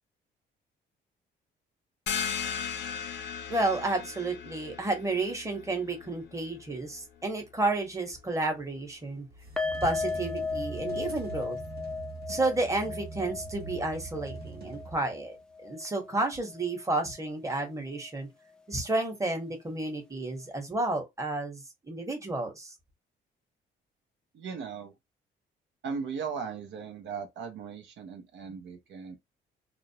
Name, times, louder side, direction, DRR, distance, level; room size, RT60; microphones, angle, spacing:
sound 1, 2.1-7.4, left 7 dB, 65° left, 0.6 m, -37 dB
voice 1, 3.5-9.3 9.8-11.6 12.3-15.4 15.6-18.3 18.7-22.7, right 2 dB, 15° right, 1.0 m, -31 dB
sound 2, 9.3-15.3, right 4 dB, 55° right, 1.0 m, -43 dB
sound 3, 9.6-16.8 17.0-17.2 17.6-17.7, left 4 dB, 5° left, 0.4 m, -37 dB
voice 2, 24.3-24.9 25.8-29.2, right 6 dB, 70° right, 0.6 m, -37 dB
2.4 x 2.0 x 2.7 m
cardioid pair, 90°, 20 cm